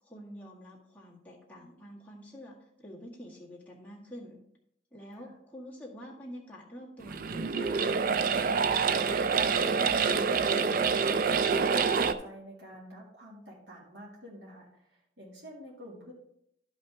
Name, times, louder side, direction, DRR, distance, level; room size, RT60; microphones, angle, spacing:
voice 1, 0.0-4.4 4.9-8.3, equal, 10° left, -5 dB, 1.8 m, -47 dB
sound 1, 7.0-12.1, right 5 dB, 50° right, 0.4 m, -26 dB
voice 2, 9.2-16.1, equal, 75° right, -5 dB, 2.2 m, -48 dB
12.0 x 5.4 x 3.5 m, 0.76 s
head